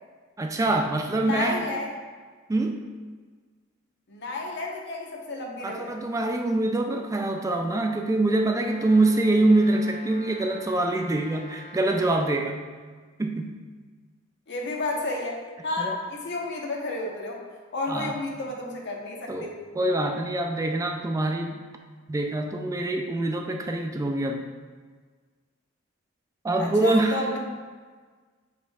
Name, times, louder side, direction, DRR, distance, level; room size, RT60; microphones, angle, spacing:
voice 1, 0.4-1.6 2.5-2.8 5.6-12.6 13.2-13.5 15.8-16.0 17.9-18.2 19.3-21.6 22.1-24.4 26.4-27.3, right 2 dB, 15° right, 3 dB, 0.3 m, -25 dB
voice 2, 1.2-1.9 4.1-5.9 14.5-17.4 17.7-19.5 26.6-27.4, left 2 dB, 60° left, -1 dB, 1.1 m, -31 dB
Brass instrument, 8.5-12.5, left 1 dB, 35° left, 0.7 m, -46 dB
8.2 x 5.1 x 2.4 m, 1.5 s
head